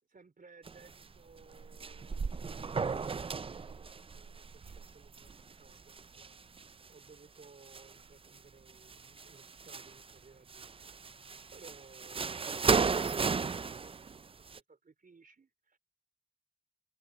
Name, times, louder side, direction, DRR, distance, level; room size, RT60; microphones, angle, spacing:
voice 1, 0.0-6.4 6.9-15.8, right 4 dB, 55° right, 4.8 m, -59 dB
sound 1, 0.6-1.1 1.4-6.9 7.4-8.4 8.7-10.1 10.5-14.6, right 5 dB, 30° right, 0.4 m, -35 dB
open air
wide cardioid pair, 100°, 18 cm